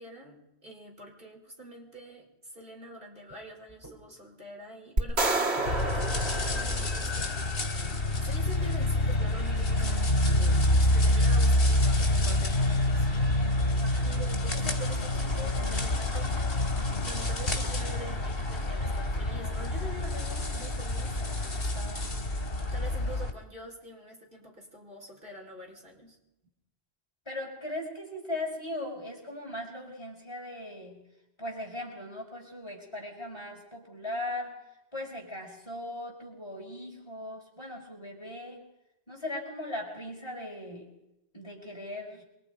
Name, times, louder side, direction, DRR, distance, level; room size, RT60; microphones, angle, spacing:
voice 1, 0.0-7.6 8.2-13.3 14.0-16.7 17.0-22.1 22.7-26.2, right 1 dB, 55° right, 0 dB, 5.4 m, -45 dB
sound 1, 3.3-3.4 3.7-4.0 5.0-5.8 7.5-8.3 8.9-9.2 9.8-10.5 11.3-11.4 11.8-12.1, right 2 dB, 20° right, 7.4 m, -53 dB
sound 2, 5.0-7.4, right 2 dB, 80° right, 2.4 m, -29 dB
sound 3, 5.7-23.3, left 1 dB, 60° left, 3.5 m, -27 dB
voice 2, 13.8-14.2 27.3-31.0 31.4-34.6 34.9-38.7 39.1-40.9 41.3-42.2, left 1 dB, 25° left, -1 dB, 5.8 m, -38 dB
28.0 x 23.5 x 5.3 m, 0.88 s
omnidirectional pair, 1.1 m